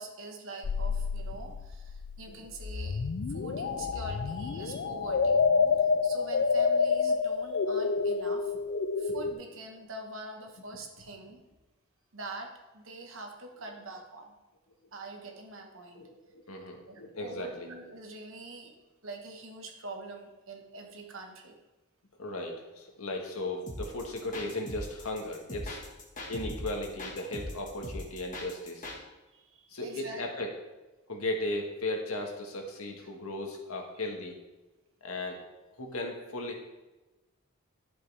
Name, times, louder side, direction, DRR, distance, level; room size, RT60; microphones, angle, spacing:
voice 1, 0.0-3.0 3.3-5.4 5.8-8.5 9.0-11.4 12.1-14.3 14.9-16.1 16.9-21.6 29.3-30.3, right 2 dB, 65° right, 3 dB, 1.5 m, -44 dB
sound 1, 0.6-9.3, left 5 dB, 55° left, 0.4 m, -28 dB
voice 2, 15.9-17.7 22.2-25.8 26.3-28.9 29.7-30.5 31.1-34.4 35.0-35.4 35.8-36.6, left 2 dB, 85° left, 2 dB, 1.6 m, -36 dB
sound 2, 23.7-29.0, left 1 dB, 35° left, 1.7 m, -40 dB
11.5 x 7.7 x 3.5 m, 1.1 s
head